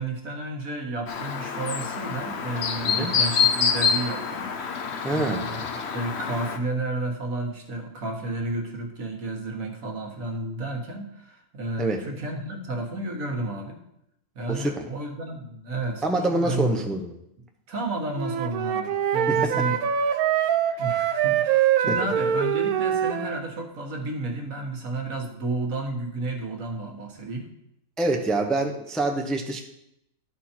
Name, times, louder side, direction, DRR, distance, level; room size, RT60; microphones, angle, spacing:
voice 1, 0.0-4.9 5.1-13.8 14.4-16.0 16.3-16.8 17.7-19.8 20.4-20.5 20.8-27.5, right 2 dB, 70° right, 2 dB, 1.7 m, -32 dB
Chirp tweet, 1.1-6.6, left 6 dB, 55° left, 0.9 m, -27 dB
voice 2, 5.0-5.4 11.8-12.0 14.5-14.8 16.0-17.1 19.3-19.5 21.9-22.0 28.0-29.6, right 2 dB, ahead, 2 dB, 0.7 m, -26 dB
Wind instrument woodwind instrument, 18.2-23.4, right 9 dB, 90° right, 1.1 m, -24 dB
12.5 x 4.5 x 4.4 m, 0.80 s
omnidirectional pair, 1.5 m